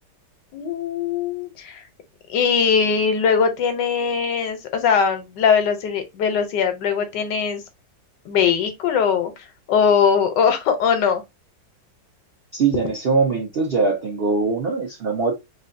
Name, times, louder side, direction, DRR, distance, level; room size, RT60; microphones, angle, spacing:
voice 1, 0.5-1.8 2.3-7.6 8.2-9.3 9.7-11.2, left 6 dB, 75° left, 1.3 m, -20 dB
voice 2, 12.5-15.4, right 4 dB, 60° right, 0.6 m, -22 dB
3.3 x 2.7 x 2.5 m
omnidirectional pair, 2.0 m